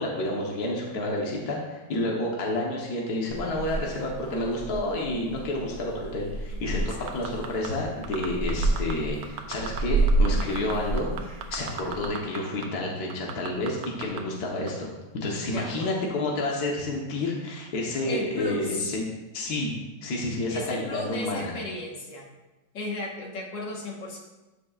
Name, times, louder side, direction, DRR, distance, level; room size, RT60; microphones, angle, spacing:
voice 1, 0.0-11.1 11.5-19.0 19.3-19.7 20.0-21.5, left 1 dB, 60° left, -1 dB, 1.7 m, -30 dB
Purr / Meow, 3.3-12.1, right 2 dB, 70° right, 3.8 m, -30 dB
voice 2, 6.7-7.1 15.5-16.0 18.0-19.0 20.5-22.3 22.7-24.2, left 2 dB, 85° left, -2 dB, 2.1 m, -35 dB
sound 1, 6.9-7.7 8.0-8.9 9.2-9.8 10.1-12.4 12.6-12.7 13.1-14.2 14.7-14.8, right 9 dB, 85° right, 1.5 m, -35 dB
13.0 x 5.9 x 2.5 m, 1.1 s
omnidirectional pair, 1.9 m